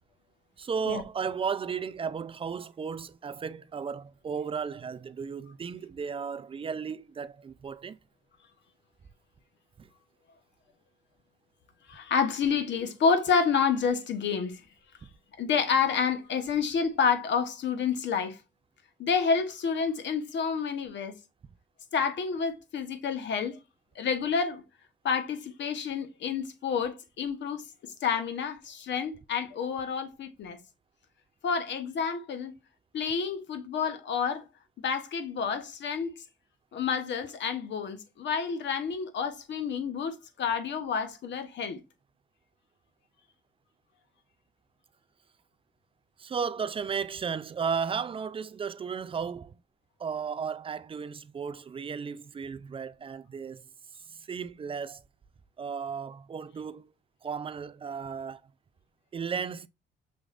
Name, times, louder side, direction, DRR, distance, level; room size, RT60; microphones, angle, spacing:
voice 1, 0.6-8.0 9.8-9.9 46.2-49.6 50.0-53.6 54.1-55.0 55.6-56.9 57.2-58.4 59.1-59.7, right 6 dB, 25° right, 0.3 m, -34 dB
voice 2, 11.9-14.6 15.4-18.4 19.0-21.1 21.9-23.6 23.9-24.6 25.0-30.6 31.4-32.5 32.9-34.5 34.8-36.1 36.7-41.8, left 6 dB, 65° left, 1.0 m, -29 dB
6.2 x 3.1 x 2.4 m
cardioid pair, 90°, 20 cm